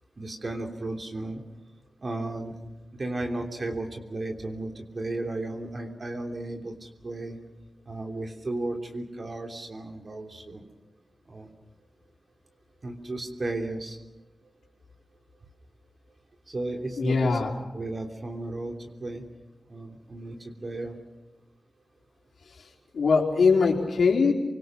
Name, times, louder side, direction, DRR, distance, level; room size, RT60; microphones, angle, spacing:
voice 1, 0.2-1.4 2.0-2.5 3.0-6.7 7.0-7.4 7.9-10.6 11.3-11.5 12.8-14.0 16.5-17.4 17.7-18.7 19.0-19.2 19.7-20.4 20.6-21.0, right 2 dB, 50° right, 2 dB, 3.2 m, -34 dB
voice 2, 17.0-17.5 22.6-22.7 22.9-24.3, left 5 dB, 80° left, 0 dB, 4.4 m, -22 dB
28.5 x 24.0 x 6.2 m, 1.0 s
cardioid pair, 45°, 0 cm